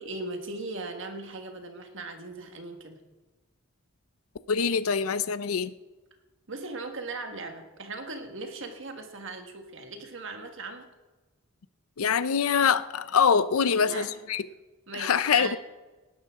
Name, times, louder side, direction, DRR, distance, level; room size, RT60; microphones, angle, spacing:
voice 1, 0.0-3.0 6.5-10.9 13.6-14.2 14.9-15.6, right 3 dB, 60° right, 5 dB, 1.6 m, -38 dB
voice 2, 4.5-5.7 12.0-14.4 14.9-15.6, left 6 dB, 85° left, 14 dB, 0.6 m, -24 dB
19.0 x 11.0 x 3.7 m, 1.2 s
head